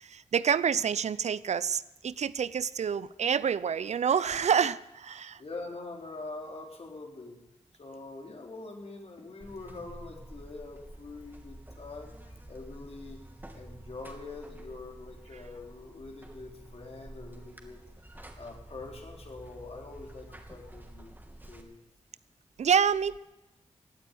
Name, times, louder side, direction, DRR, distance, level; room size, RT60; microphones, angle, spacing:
voice 1, 0.0-5.4 22.6-23.2, right 7 dB, 70° right, 18 dB, 0.5 m, -27 dB
voice 2, 5.4-7.4 7.8-13.2 13.5-17.8 18.4-21.2 21.5-21.8, left 3 dB, 60° left, 1 dB, 3.8 m, -44 dB
Buzz, 9.4-21.6, right 1 dB, 15° right, 2.7 m, -49 dB
17.0 x 9.0 x 9.3 m, 0.98 s
cardioid pair, 40°, 12 cm